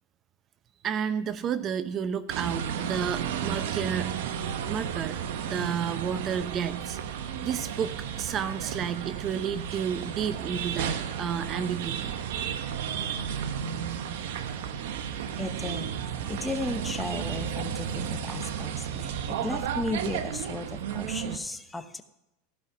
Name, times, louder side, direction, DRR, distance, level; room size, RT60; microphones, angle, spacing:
voice 1, 0.8-4.1 4.7-5.2 5.4-7.0 7.4-12.1 18.0-18.4 18.9-19.6, right 7 dB, 35° right, 13 dB, 0.6 m, -31 dB
sound 1, 2.3-21.4, right 8 dB, 75° right, 1.0 m, -33 dB
voice 2, 15.4-15.9 16.3-22.0, left 2 dB, 10° left, 8 dB, 1.0 m, -35 dB
16.0 x 5.7 x 5.7 m, 0.88 s
hypercardioid pair, 110°, 0 cm